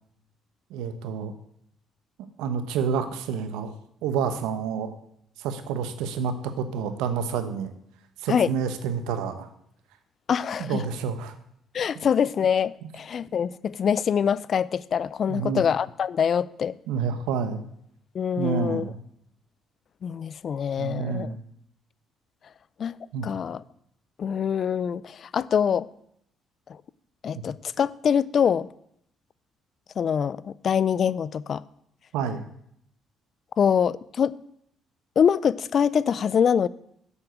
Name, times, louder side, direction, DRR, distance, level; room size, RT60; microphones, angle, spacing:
voice 1, 0.7-1.3 2.4-3.7 4.0-5.0 5.4-7.7 8.2-9.5 10.6-11.3 15.3-15.6 16.9-17.6 18.4-19.0 20.8-21.4 23.1-23.3 32.1-32.4, right 6 dB, 85° right, 1.0 m, -28 dB
voice 2, 10.3-10.8 11.7-16.8 18.1-18.8 20.0-21.3 22.8-23.0 23.2-23.6 24.2-25.9 27.2-28.7 30.0-31.6 33.6-34.4 35.2-36.7, left 7 dB, 55° left, 0.4 m, -24 dB
7.0 x 6.9 x 8.0 m
supercardioid pair, 65°, 0 cm